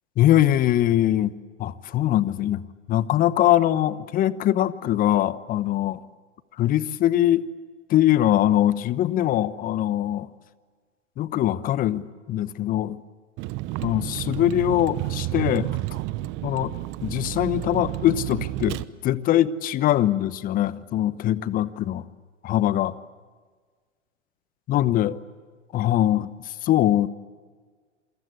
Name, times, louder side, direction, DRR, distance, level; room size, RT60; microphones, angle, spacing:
voice 1, 0.2-1.3 1.6-6.0 6.6-7.5 7.9-10.3 11.2-13.0 13.8-15.7 16.4-16.7 17.0-22.0 22.4-23.0 24.7-25.2 25.7-27.1, left 12 dB, 25° left, 17 dB, 1.0 m, -22 dB
Vehicle, 13.4-18.8, right 18 dB, 30° right, 1.0 m, -31 dB
28.5 x 23.5 x 8.1 m, 1.5 s
hypercardioid pair, 120°, 37 cm